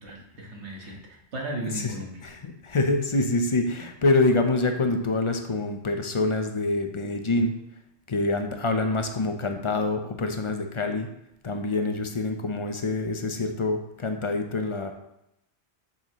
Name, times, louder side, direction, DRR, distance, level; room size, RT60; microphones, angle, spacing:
voice 1, 0.0-2.2, right 1 dB, 85° right, -1 dB, 1.8 m, -36 dB
voice 2, 2.4-7.5 8.1-11.1 11.4-14.9, left 2 dB, 35° left, 5 dB, 0.6 m, -26 dB
7.2 x 6.5 x 3.1 m, 0.81 s
omnidirectional pair, 1.1 m